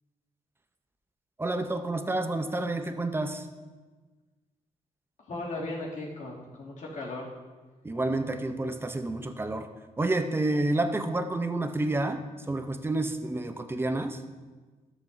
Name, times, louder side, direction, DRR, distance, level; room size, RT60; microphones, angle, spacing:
voice 1, 1.4-3.5 7.8-9.7 10.0-14.2, right 2 dB, 15° right, 8 dB, 0.6 m, -29 dB
voice 2, 5.3-7.3, left 2 dB, 60° left, -5 dB, 2.4 m, -36 dB
13.5 x 7.0 x 2.6 m, 1.3 s
cardioid pair, 95°, 15 cm